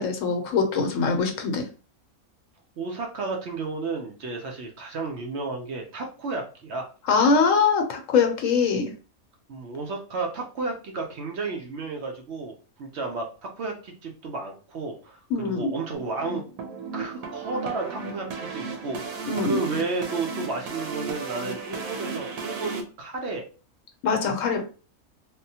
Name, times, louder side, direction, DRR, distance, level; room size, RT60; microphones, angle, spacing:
voice 1, 0.0-1.7 7.1-8.9 15.3-15.7 19.3-19.6 24.0-24.6, left 5 dB, 75° left, 4 dB, 1.0 m, -22 dB
voice 2, 2.8-6.9 9.5-16.4 16.9-23.4, right 3 dB, 60° right, 2 dB, 0.8 m, -32 dB
sound 1, 15.9-22.8, right 4 dB, 90° right, 1.1 m, -35 dB
3.5 x 2.1 x 2.7 m, 0.37 s
omnidirectional pair, 1.4 m